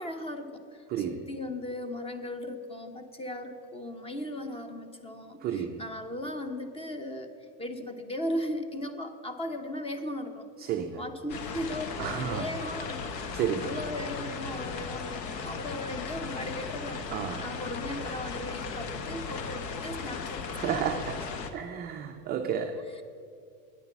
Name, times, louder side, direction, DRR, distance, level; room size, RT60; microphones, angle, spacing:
voice 1, 0.0-7.3 7.6-10.5 10.9-20.8 22.7-22.8, left 1 dB, 10° left, 8 dB, 0.7 m, -37 dB
voice 2, 0.9-1.2 5.4-5.8 10.6-11.0 12.0-12.5 13.3-13.7 17.1-17.4 20.5-21.2 21.5-23.0, right 8 dB, 25° right, 4 dB, 0.3 m, -32 dB
sound 1, 11.3-21.5, left 5 dB, 85° left, 1.1 m, -37 dB
9.3 x 9.0 x 5.9 m, 2.4 s
supercardioid pair, 115°, 49 cm